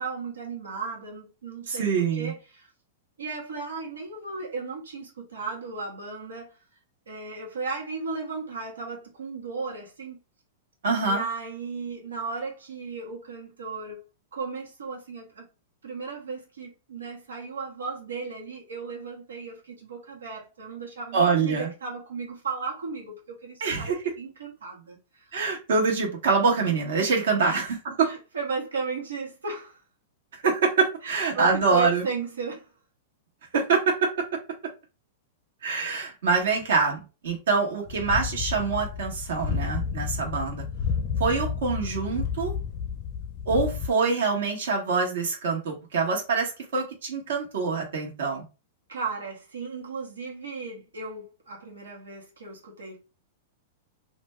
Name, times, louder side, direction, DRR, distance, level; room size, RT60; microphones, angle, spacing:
voice 1, 0.0-2.7 3.2-6.6 7.1-10.2 11.0-14.0 14.3-15.5 15.8-25.3 27.4-27.7 28.0-29.8 31.0-32.7 48.9-53.0, right 4 dB, 90° right, 1.1 m, -35 dB
voice 2, 1.7-2.3 10.8-11.2 21.1-21.7 23.6-24.0 25.3-28.1 30.4-32.0 33.5-34.1 35.6-40.6 41.2-42.5 43.5-48.4, right 4 dB, 75° right, 1.2 m, -25 dB
sound 1, 37.9-43.9, left 6 dB, 50° left, 0.5 m, -31 dB
2.5 x 2.2 x 3.3 m
hypercardioid pair, 120°, 0 cm